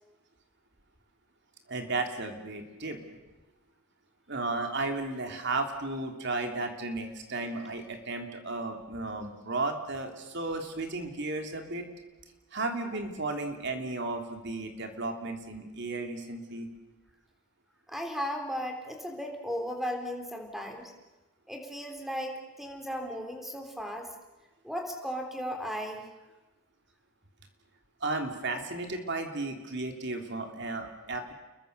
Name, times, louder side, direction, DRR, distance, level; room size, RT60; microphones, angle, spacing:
voice 1, 1.7-3.0 4.3-11.8 12.5-16.7 28.0-31.3, right 2 dB, 50° right, 4 dB, 3.2 m, -34 dB
voice 2, 17.9-20.9 21.5-24.1 24.6-26.0, equal, ahead, 3 dB, 3.6 m, -36 dB
29.5 x 22.5 x 6.8 m, 1.1 s
head